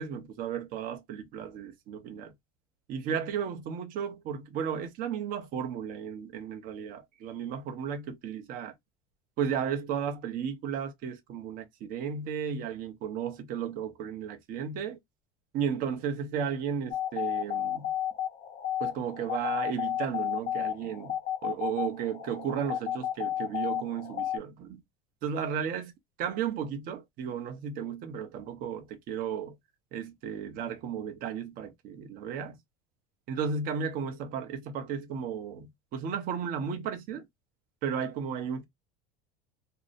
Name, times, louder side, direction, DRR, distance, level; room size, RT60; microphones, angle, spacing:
voice 1, 0.0-2.3 2.9-8.7 9.4-15.0 15.5-17.9 18.8-21.2 21.4-24.8 25.2-25.9 26.2-29.6 29.9-32.6 33.3-37.3 37.8-38.6, right 7 dB, 50° right, 0.7 m, -34 dB
sound 1, 16.9-24.4, left 11 dB, 50° left, 0.7 m, -33 dB
2.7 x 2.0 x 2.5 m
supercardioid pair, 130°, 18 cm